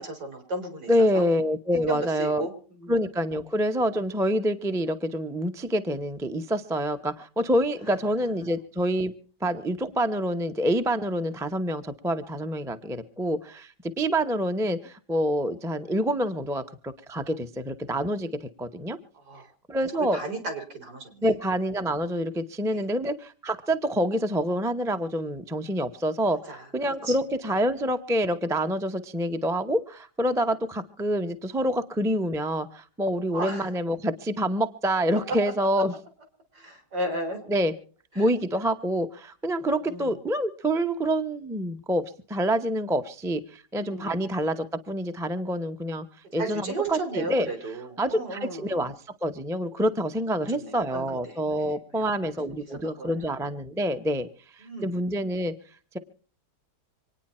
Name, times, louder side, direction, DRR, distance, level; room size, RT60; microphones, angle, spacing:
voice 1, 0.0-1.2 1.8-2.9 8.4-8.5 19.1-19.4 19.8-21.3 22.7-22.9 26.5-26.6 27.1-27.2 33.3-33.7 36.5-37.4 38.2-38.3 39.9-40.1 43.8-44.2 46.4-48.8 50.5-52.1 52.5-53.1 54.6-55.0, right 2 dB, 65° right, 5 dB, 4.0 m, -35 dB
voice 2, 0.9-2.5 2.9-9.1 9.4-19.0 19.7-20.2 21.2-35.9 37.5-37.7 38.1-42.0 42.3-46.1 46.3-47.5 48.0-48.9 49.2-54.3 54.5-55.5, equal, 5° right, 8 dB, 0.5 m, -27 dB
26.0 x 9.7 x 4.3 m, 0.42 s
omnidirectional pair, 1.9 m